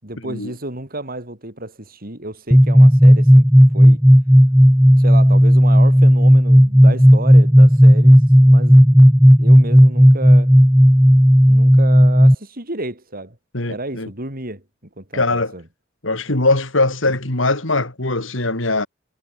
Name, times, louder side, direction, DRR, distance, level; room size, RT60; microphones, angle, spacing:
voice 1, 0.0-3.5 3.7-4.0 5.0-10.6 11.5-13.4 13.6-14.6 15.0-15.6, right 2 dB, 50° right, 7.4 m, -31 dB
sound 1, 2.5-12.3, equal, ahead, 0.7 m, -10 dB
voice 2, 13.5-14.1 15.1-15.5 16.0-18.9, left 2 dB, 80° left, 4.2 m, -21 dB
head